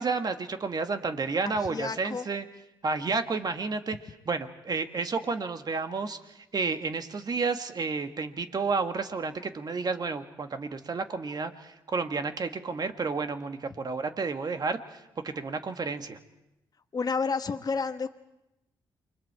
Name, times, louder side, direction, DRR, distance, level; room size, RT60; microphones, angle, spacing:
voice 1, 0.0-2.4 2.8-16.2, right 4 dB, 45° right, 8 dB, 1.6 m, -31 dB
voice 2, 1.5-2.3 16.9-18.1, left 5 dB, 40° left, 7 dB, 1.0 m, -30 dB
28.5 x 22.0 x 4.7 m, 0.91 s
supercardioid pair, 60°, 9 cm